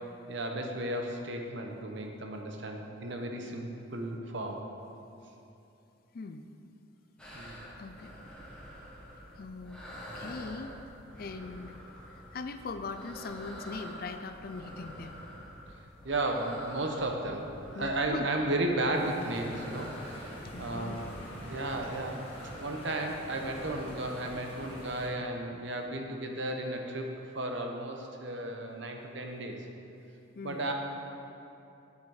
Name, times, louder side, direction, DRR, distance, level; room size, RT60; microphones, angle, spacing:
voice 1, 0.3-4.6 7.3-7.6 16.0-17.5 17.7-21.1 21.4-22.2 22.6-29.7 30.4-30.7, right 1 dB, 60° right, 2 dB, 1.0 m, -34 dB
voice 2, 6.1-6.4 7.8-8.1 9.4-9.8 10.1-10.8 11.2-11.7 12.1-15.2 17.7-18.3 20.4-21.0 30.3-30.7, left 4 dB, 45° left, 8 dB, 0.4 m, -41 dB
sound 1, 7.2-24.9, equal, 5° left, 1.4 m, -47 dB
sound 2, 18.9-25.1, equal, 25° left, 1.6 m, -46 dB
8.7 x 8.3 x 4.9 m, 2.8 s
head